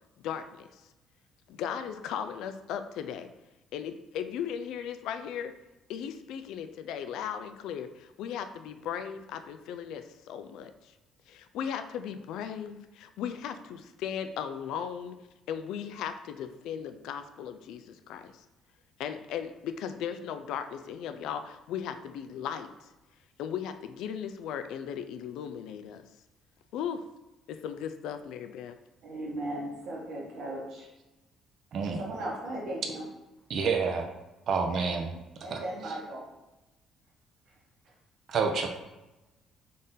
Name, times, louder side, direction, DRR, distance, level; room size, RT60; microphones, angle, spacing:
voice 1, 0.2-0.8 1.5-3.3 3.7-5.5 5.9-10.9 11.3-15.2 15.5-18.4 19.0-22.9 23.4-26.0 26.7-27.0 27.5-28.8, left 8 dB, 80° left, 9 dB, 0.3 m, -37 dB
voice 2, 29.0-30.9 32.0-33.1 35.4-36.3 37.5-37.6 37.8-37.9, right 1 dB, 70° right, -2 dB, 1.1 m, -37 dB
voice 3, 33.5-34.1 34.5-35.1 35.5-35.6 38.3-38.7, right 5 dB, 50° right, 4 dB, 0.5 m, -28 dB
3.9 x 2.6 x 3.8 m, 1.0 s
cardioid pair, 140°, 0 cm